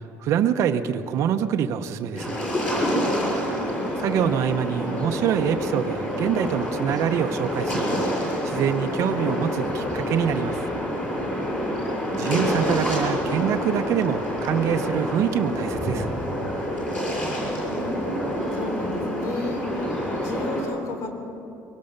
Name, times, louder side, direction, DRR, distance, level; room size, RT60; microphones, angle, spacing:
voice 1, 0.0-2.4 4.0-10.6 12.2-16.1, right 8 dB, 55° right, 6 dB, 0.8 m, -25 dB
sound 1, 2.1-20.6, equal, 25° left, 6.4 m, -27 dB
voice 2, 3.0-3.8 11.2-11.7 17.7-19.9 20.2-21.1, left 2 dB, 60° left, 4 dB, 3.7 m, -34 dB
23.5 x 17.0 x 6.7 m, 2.9 s
cardioid pair, 165°, 6 cm